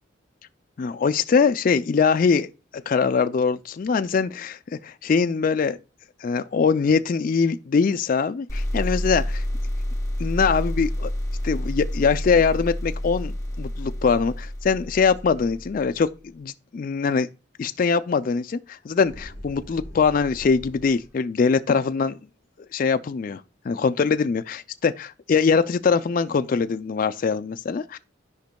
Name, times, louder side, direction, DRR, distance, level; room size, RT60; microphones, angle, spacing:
voice 1, 0.8-2.5 2.9-4.6 4.8-5.8 6.2-9.4 10.2-11.1 11.4-16.1 16.3-17.3 17.6-22.2 22.7-23.4 23.7-28.0, left 5 dB, 45° left, 0.3 m, -22 dB
sound 1, 8.5-16.0, left 1 dB, 15° left, 0.8 m, -29 dB
sound 2, 19.0-21.2, equal, 15° right, 3.7 m, -42 dB
13.0 x 5.1 x 2.2 m
head